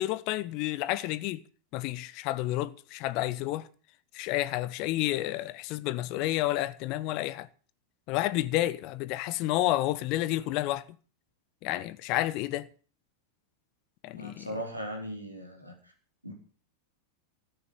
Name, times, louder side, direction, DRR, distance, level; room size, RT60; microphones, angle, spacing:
voice 1, 0.0-1.4 1.7-3.7 4.1-7.5 8.1-10.8 11.6-12.7 14.0-14.5, left 16 dB, 40° left, 0.9 m, -30 dB
voice 2, 14.1-15.9 16.2-16.3, right 1 dB, 85° right, 4.8 m, -38 dB
14.0 x 9.6 x 8.5 m
figure-of-eight pair, 90°, 0 cm